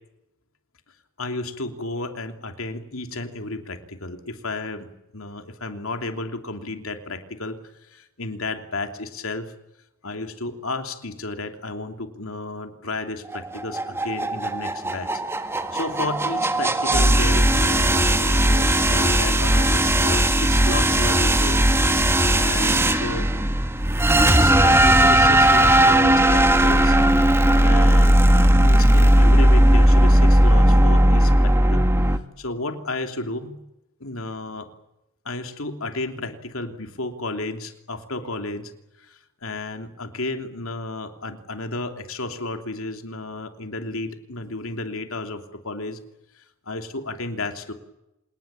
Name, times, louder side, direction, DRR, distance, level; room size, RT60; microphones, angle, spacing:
voice 1, 1.2-4.9 5.1-7.6 7.9-9.5 10.0-15.1 15.7-21.6 22.3-23.3 24.1-27.0 27.6-28.2 28.6-31.9 32.4-33.6 34.0-34.7 35.2-38.7 39.1-39.2 39.4-46.0 46.7-47.7, left 2 dB, 70° left, 6 dB, 3.1 m, -32 dB
sound 1, 13.3-32.2, right 1 dB, 10° right, 1.6 m, -17 dB
27.0 x 20.0 x 8.9 m, 0.89 s
head